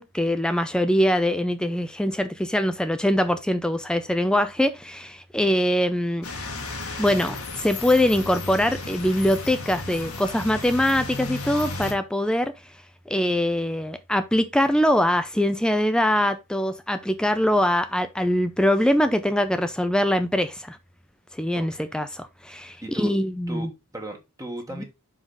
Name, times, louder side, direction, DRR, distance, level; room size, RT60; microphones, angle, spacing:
voice 1, 0.0-6.3 7.0-12.5 13.1-20.8 21.3-23.7 24.8-24.9, left 1 dB, 5° left, 0.4 m, -23 dB
sound 1, 6.2-11.9, left 3 dB, 90° left, 1.9 m, -34 dB
voice 2, 21.5-21.9 22.8-23.1 23.5-24.8, right 1 dB, 15° right, 1.4 m, -36 dB
5.6 x 5.1 x 3.8 m
head